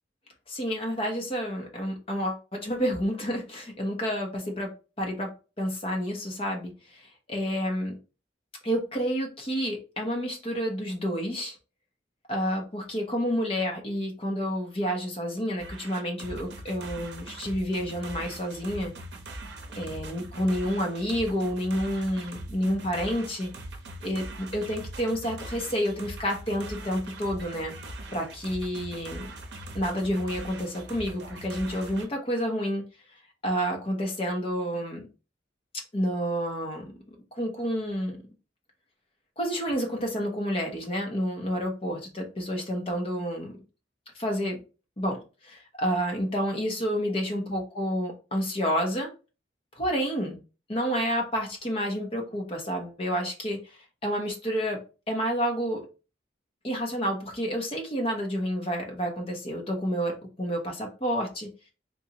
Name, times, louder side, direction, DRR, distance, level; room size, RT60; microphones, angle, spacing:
voice 1, 0.5-4.7 5.0-8.0 8.6-11.6 12.3-18.9 19.7-23.5 24.0-27.7 28.1-29.4 29.7-32.8 33.4-35.1 35.9-38.3 39.4-43.5 44.1-44.6 45.0-49.1 49.8-50.4 50.7-55.8 56.6-61.5, equal, 30° left, 1 dB, 0.9 m, -29 dB
sound 1, 15.6-32.1, right 1 dB, 65° right, 0.7 m, -41 dB
3.8 x 2.6 x 2.9 m, 0.32 s
head